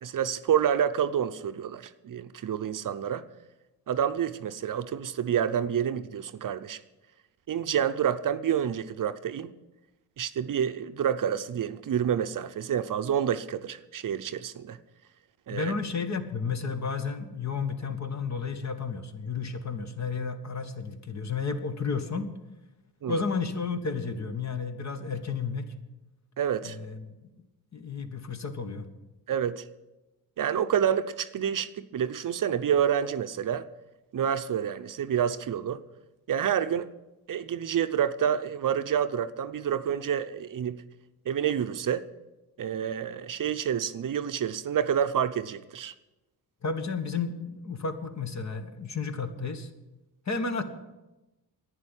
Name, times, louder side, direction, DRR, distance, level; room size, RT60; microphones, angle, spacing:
voice 1, 0.0-3.3 3.9-6.8 7.5-9.5 10.2-14.8 15.5-15.7 23.0-23.2 26.4-26.8 29.3-29.6 30.4-33.7 34.1-35.8 36.3-36.9 37.3-40.8 41.3-42.1 42.6-45.9, right 9 dB, 55° right, 12 dB, 0.7 m, -28 dB
voice 2, 15.5-22.3 23.1-25.7 26.6-27.1 27.7-28.9 46.6-49.7 50.2-50.6, left 5 dB, 45° left, 8 dB, 1.5 m, -32 dB
11.0 x 9.6 x 9.8 m, 1.0 s
cardioid pair, 90°, 39 cm